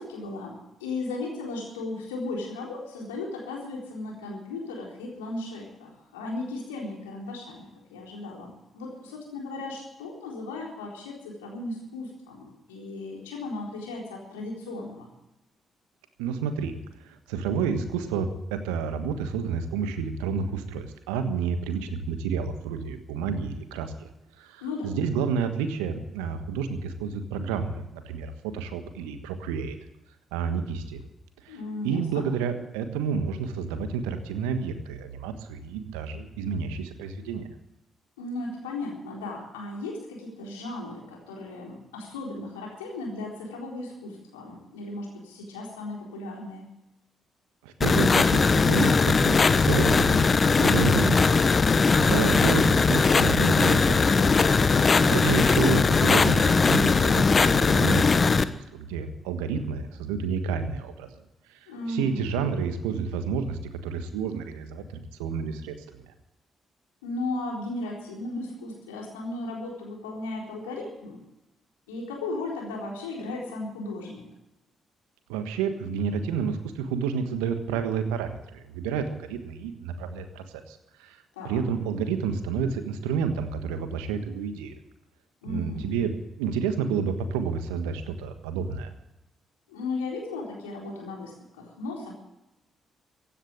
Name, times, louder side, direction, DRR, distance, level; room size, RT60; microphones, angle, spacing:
voice 1, 0.0-15.1 24.6-24.9 31.5-32.3 38.2-46.7 54.7-55.1 61.7-62.3 67.0-71.2 71.9-74.2 81.4-81.6 85.4-85.8 89.7-91.3 91.6-92.1, left 2 dB, 85° left, -1 dB, 4.0 m, -36 dB
voice 2, 16.2-16.7 17.0-24.1 24.4-29.8 30.3-31.0 31.4-37.5 47.6-51.3 52.0-54.3 55.1-61.1 61.9-65.7 75.3-81.2 81.4-84.7 85.4-88.9, right 6 dB, 80° right, 8 dB, 1.4 m, -30 dB
sound 1, 47.8-58.4, left 4 dB, 40° left, 1.0 m, -20 dB
16.0 x 10.0 x 8.7 m, 0.91 s
hypercardioid pair, 40°, 0 cm